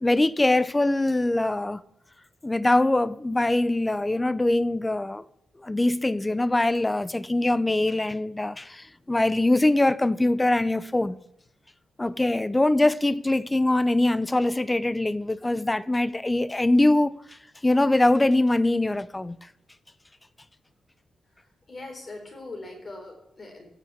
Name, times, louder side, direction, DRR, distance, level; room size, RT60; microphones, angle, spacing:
voice 1, 0.0-1.8 2.4-5.2 5.6-11.2 12.0-17.2 17.6-19.4, left 2 dB, 10° left, 0.4 m, -23 dB
voice 2, 21.2-23.7, left 2 dB, 30° left, 3.7 m, -41 dB
14.5 x 6.1 x 8.3 m
wide cardioid pair, 150°, 0 cm